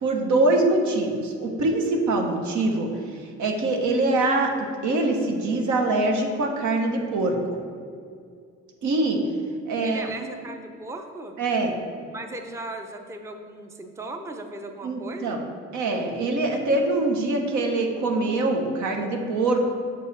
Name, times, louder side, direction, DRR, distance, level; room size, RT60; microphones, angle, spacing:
voice 1, 0.0-2.9 3.4-4.5 4.8-7.6 8.8-9.2 9.7-10.1 11.4-11.7 14.8-15.4 15.7-19.7, right 2 dB, 75° right, 2 dB, 1.0 m, -23 dB
voice 2, 9.8-11.4 12.0-15.4, right 2 dB, 10° right, 5 dB, 0.5 m, -37 dB
6.7 x 4.7 x 4.0 m, 2.3 s
cardioid pair, 90°, 30 cm